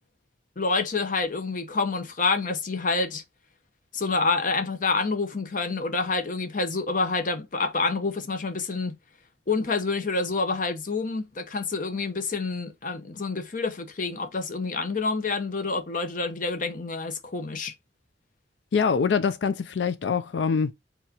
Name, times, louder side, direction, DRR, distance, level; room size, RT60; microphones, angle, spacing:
voice 1, 0.6-3.2 3.9-9.0 9.5-17.7, left 3 dB, 50° left, 0.8 m, -27 dB
voice 2, 18.7-20.7, left 5 dB, 90° left, 0.4 m, -24 dB
4.6 x 4.0 x 2.8 m
head